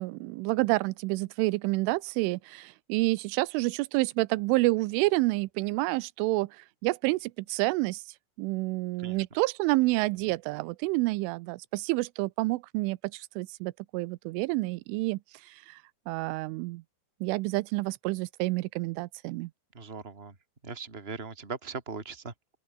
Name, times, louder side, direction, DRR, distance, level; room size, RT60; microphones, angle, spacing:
voice 1, 0.0-8.0 8.4-15.8 16.1-16.8 17.2-19.5, right 22 dB, 90° right, 3.2 m, -29 dB
voice 2, 19.7-20.3 20.6-22.3, right 5 dB, 15° right, 2.8 m, -39 dB
open air
omnidirectional pair, 5.5 m